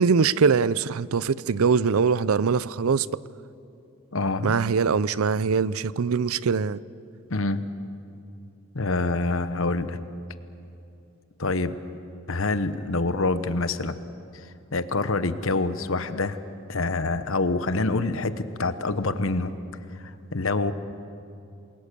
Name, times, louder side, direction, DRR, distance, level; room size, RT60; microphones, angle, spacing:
voice 1, 0.0-3.1 4.4-6.8, right 5 dB, 80° right, 0.5 m, -22 dB
voice 2, 4.1-4.6 7.3-7.6 8.7-10.0 11.4-11.8 12.3-14.0 14.3-16.4 16.7-19.6 20.0-20.7, left 3 dB, 70° left, 1.0 m, -26 dB
28.0 x 22.0 x 6.8 m
head